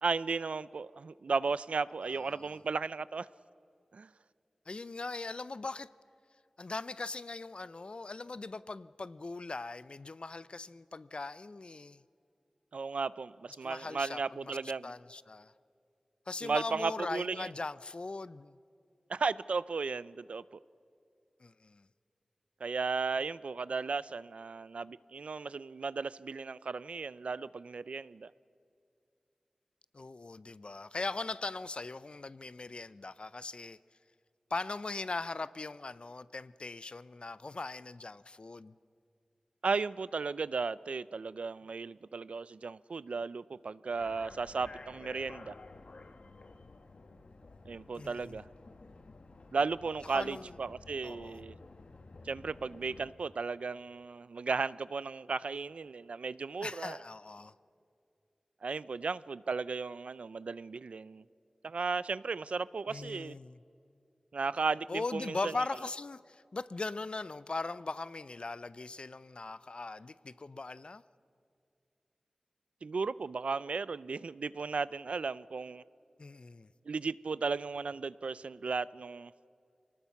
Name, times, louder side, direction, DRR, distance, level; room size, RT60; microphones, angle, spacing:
voice 1, 0.0-3.3 3.9-4.1 12.7-14.9 16.4-17.5 19.1-20.4 22.6-28.3 39.6-45.5 47.7-48.4 49.5-51.6 52.2-57.0 58.6-61.2 61.6-63.4 64.3-65.5 72.8-75.8 76.9-79.3, right 4 dB, 80° right, 0.4 m, -35 dB
voice 2, 4.7-5.9 6.6-12.0 13.6-14.6 14.8-15.5 16.3-18.6 21.4-21.9 29.9-33.8 34.5-38.7 48.0-48.4 50.1-50.5 51.0-51.4 56.6-57.5 62.9-63.6 64.9-71.0 76.2-76.7, left 3 dB, 55° left, 0.5 m, -40 dB
sound 1, 44.0-53.1, left 3 dB, 70° left, 1.1 m, -52 dB
24.0 x 19.0 x 5.9 m
cardioid pair, 45°, 2 cm